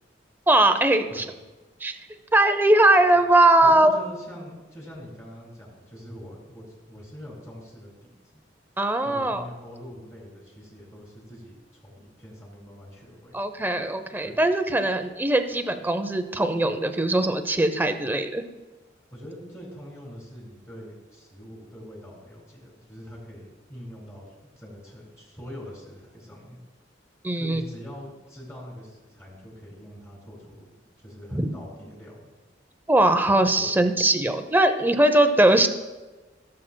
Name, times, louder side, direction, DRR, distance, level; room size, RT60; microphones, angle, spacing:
voice 1, 0.5-1.2 1.8-2.0 2.3-4.0 8.8-9.5 13.3-18.4 27.2-27.6 31.3-31.5 32.9-35.7, right 1 dB, 10° right, 8 dB, 0.5 m, -20 dB
voice 2, 3.6-8.4 9.0-13.4 14.2-14.4 19.1-26.6 27.3-30.7 31.0-32.3 33.6-33.8, equal, 15° left, -4 dB, 3.3 m, -43 dB
17.0 x 7.4 x 2.2 m, 1.2 s
head